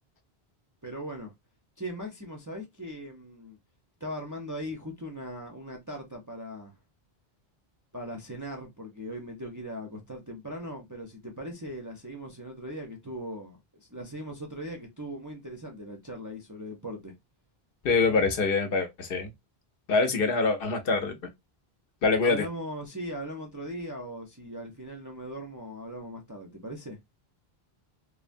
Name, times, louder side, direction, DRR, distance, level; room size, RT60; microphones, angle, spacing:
voice 1, 0.8-1.3 1.8-3.6 4.0-6.7 7.9-17.2 22.2-27.0, equal, 25° right, 0.4 m, -39 dB
voice 2, 17.8-19.3 19.9-21.3 22.0-22.5, left 4 dB, 65° left, 0.8 m, -25 dB
3.2 x 2.1 x 2.4 m
omnidirectional pair, 1.0 m